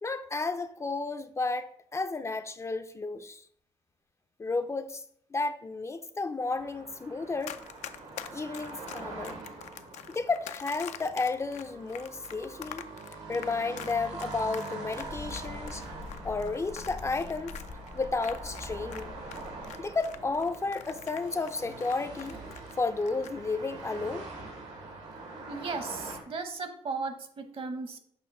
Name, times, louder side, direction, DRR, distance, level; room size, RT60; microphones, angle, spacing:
voice 1, 0.0-3.4 4.4-5.0 5.3-7.6 8.3-9.4 10.1-12.8 13.3-15.8 16.2-17.5 17.9-19.1 19.8-22.4 22.8-24.3, left 3 dB, 25° left, 0.4 m, -32 dB
sound 1, 6.5-26.2, right 3 dB, 85° right, 1.6 m, -44 dB
Run, 7.4-19.0 19.3-22.7 23.0-23.3, left 10 dB, 90° left, 0.4 m, -44 dB
Mechanical fan, 15.0-20.4, left 5 dB, 60° left, 0.8 m, -46 dB
voice 2, 25.5-28.0, right 4 dB, 50° right, 0.9 m, -36 dB
6.9 x 2.9 x 5.2 m
cardioid pair, 90°, 11 cm